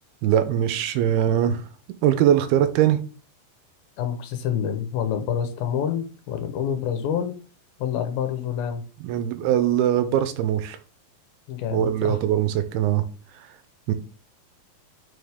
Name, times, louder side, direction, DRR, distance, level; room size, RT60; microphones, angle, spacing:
voice 1, 0.2-1.6 2.0-3.0 9.0-10.8 11.7-13.0 13.9-14.0, right 10 dB, 80° right, 11 dB, 2.7 m, -21 dB
voice 2, 4.0-7.4 7.8-8.8 11.5-12.2, left 8 dB, 75° left, 8 dB, 2.8 m, -27 dB
7.6 x 6.1 x 3.6 m, 0.38 s
omnidirectional pair, 4.4 m